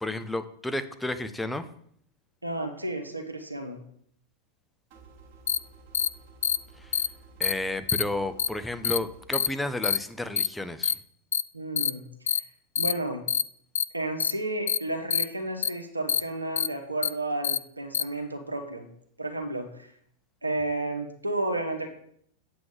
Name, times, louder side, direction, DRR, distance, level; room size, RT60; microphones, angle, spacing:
voice 1, 0.0-1.7 6.8-7.0 7.4-11.0, left 1 dB, 5° left, 9 dB, 0.7 m, -32 dB
voice 2, 2.4-3.8 11.5-12.5 12.8-13.2 13.9-18.9 19.2-19.9 20.4-21.9, right 2 dB, 85° right, 5 dB, 1.1 m, -32 dB
sound 1, 4.9-9.3, right 3 dB, 45° right, 1.4 m, -52 dB
sound 2, 5.5-5.6 5.9-6.1 6.4-6.6 6.9-7.1 7.4-7.5 7.9-8.0 8.4-8.5 8.8-9.0 9.3-9.5 9.8-10.0 10.4-10.5 10.8-10.9 11.3-11.4 11.8-11.9 12.3-12.4 12.8-12.9 13.3-13.4 13.8-13.9 14.2-14.3 14.7-14.8 15.1-15.2 15.6-15.7 16.1-16.2 16.6-16.7 17.0-17.1 17.4-17.6 17.9-18.0, left 8 dB, 65° left, 0.3 m, -25 dB
7.8 x 7.5 x 3.7 m, 0.65 s
figure-of-eight pair, 90°, 0 cm